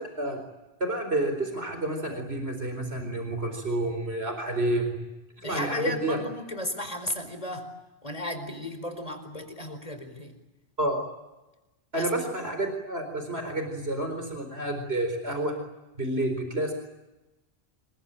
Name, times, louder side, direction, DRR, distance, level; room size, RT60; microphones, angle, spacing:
voice 1, 0.8-4.9 5.4-6.2 10.8-11.0 11.9-15.5 16.0-16.7, right 1 dB, 70° right, 6 dB, 4.7 m, -29 dB
voice 2, 5.4-7.7 8.0-10.3 11.9-12.1, left 1 dB, 35° left, 7 dB, 4.7 m, -34 dB
26.5 x 23.0 x 9.0 m, 1.0 s
omnidirectional pair, 1.1 m